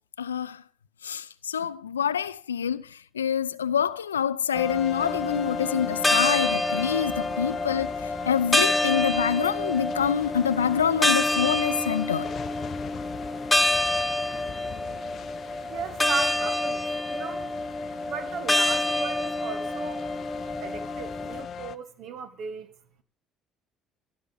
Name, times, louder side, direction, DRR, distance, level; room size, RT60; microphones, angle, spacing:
voice 1, 0.2-0.6 1.0-12.3, left 8 dB, 85° left, 0.5 m, -26 dB
sound 1, 4.5-21.8, left 7 dB, 45° left, 0.7 m, -37 dB
sound 2, 5.0-21.4, left 1 dB, 15° left, 1.0 m, -28 dB
voice 2, 15.7-17.5 18.0-20.1 20.6-22.7, right 5 dB, 55° right, 1.8 m, -36 dB
16.0 x 5.5 x 8.5 m
figure-of-eight pair, 55°, 0 cm